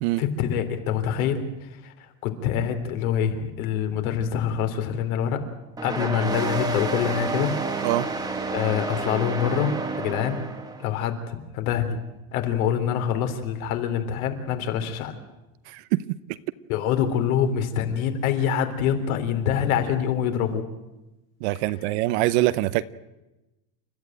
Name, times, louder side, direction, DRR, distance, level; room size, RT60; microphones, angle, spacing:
voice 1, 0.2-1.9 2.2-5.4 5.8-7.5 8.5-10.4 10.8-12.0 12.3-15.1 16.7-20.7, left 8 dB, 70° left, 3.6 m, -25 dB
sound 1, 5.8-10.9, right 3 dB, 10° right, 1.5 m, -29 dB
voice 2, 15.7-16.4 21.4-22.8, right 17 dB, 50° right, 0.9 m, -24 dB
29.5 x 13.5 x 9.1 m
supercardioid pair, 165°, 44 cm